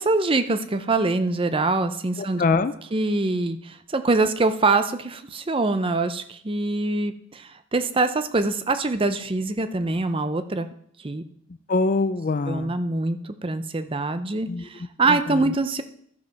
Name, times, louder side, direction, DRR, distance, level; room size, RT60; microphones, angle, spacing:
voice 1, 0.0-2.4 2.9-10.7 11.0-11.2 12.5-15.8, right 3 dB, 25° right, 10 dB, 0.5 m, -24 dB
voice 2, 2.2-2.7 11.7-12.7 14.5-14.6 15.1-15.4, left 3 dB, 40° left, 13 dB, 0.4 m, -24 dB
12.0 x 5.2 x 5.8 m, 0.65 s
head